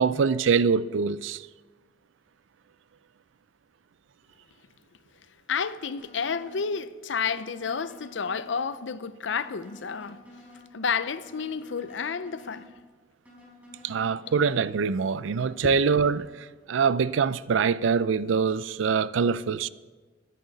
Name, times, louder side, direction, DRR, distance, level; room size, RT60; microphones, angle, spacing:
voice 1, 0.0-1.4 13.8-19.7, right 5 dB, 85° right, 0.4 m, -24 dB
voice 2, 5.5-10.2 10.7-12.7 15.6-15.8, left 6 dB, 70° left, 0.6 m, -30 dB
sound 1, 6.0-6.7 7.2-8.7 9.2-10.7 11.2-12.7 13.2-14.7 15.2-16.2, left 2 dB, 10° right, 5.0 m, -50 dB
20.5 x 10.0 x 4.1 m
head